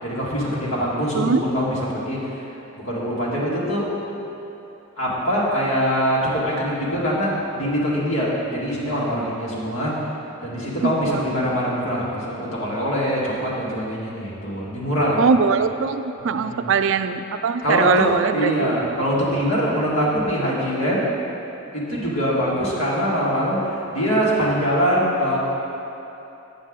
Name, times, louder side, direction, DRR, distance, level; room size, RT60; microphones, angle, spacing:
voice 1, 0.0-2.4 2.8-3.9 5.0-9.9 10.4-15.2 16.3-16.7 17.6-21.1 21.7-25.4, equal, 90° left, -6 dB, 2.0 m, -23 dB
voice 2, 11.0-11.6 15.2-18.8, right 5 dB, 65° right, 10 dB, 0.4 m, -21 dB
8.3 x 7.9 x 3.7 m, 3.0 s
head